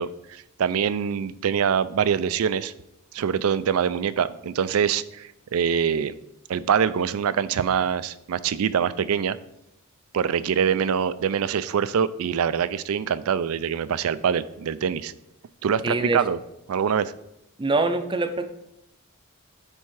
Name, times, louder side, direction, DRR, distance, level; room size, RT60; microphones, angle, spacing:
voice 1, 0.0-2.7 3.1-6.1 6.5-9.4 10.1-15.1 15.6-16.4 16.7-17.1, right 7 dB, 75° right, 16 dB, 0.4 m, -24 dB
voice 2, 15.8-16.2 17.6-18.5, right 3 dB, 20° right, 8 dB, 0.5 m, -24 dB
10.0 x 3.6 x 4.7 m, 0.85 s
head